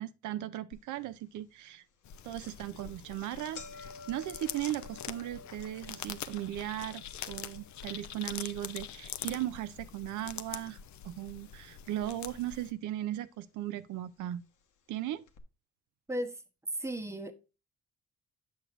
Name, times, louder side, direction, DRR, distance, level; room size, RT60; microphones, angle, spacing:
voice 1, 0.0-1.8 2.2-10.8 11.0-14.4 14.9-15.2, right 13 dB, 80° right, 0.5 m, -37 dB
sound 1, 0.7-0.8 1.4-1.5 2.3-2.5 2.8-2.9 3.2-11.4 11.6-12.4 13.2-13.3 14.2-14.3 14.6-14.7 15.3-15.4, left 4 dB, 85° left, 1.2 m, -53 dB
sound 2, 2.0-12.7, left 10 dB, 70° left, 0.7 m, -44 dB
voice 2, 16.1-16.4 16.8-17.3, right 1 dB, 10° right, 1.0 m, -35 dB
8.0 x 6.2 x 2.5 m
cardioid pair, 90°, 30 cm